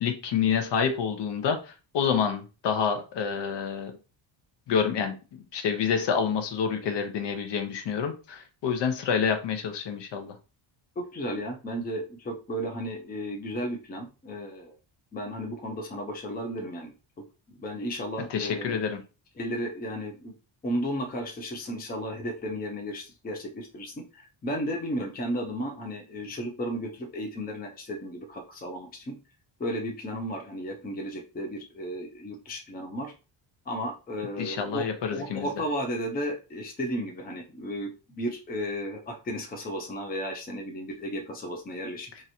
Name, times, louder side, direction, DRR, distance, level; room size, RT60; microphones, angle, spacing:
voice 1, 0.0-3.9 4.7-5.2 5.5-10.3 18.3-19.0 34.4-35.5, left 7 dB, 60° left, 6 dB, 0.8 m, -28 dB
voice 2, 11.0-14.8 15.1-16.9 17.5-18.8 19.4-20.4 20.6-29.2 29.6-33.1 33.7-42.1, equal, 20° left, 2 dB, 0.6 m, -34 dB
3.0 x 2.6 x 4.2 m, 0.32 s
cardioid pair, 170°, 48 cm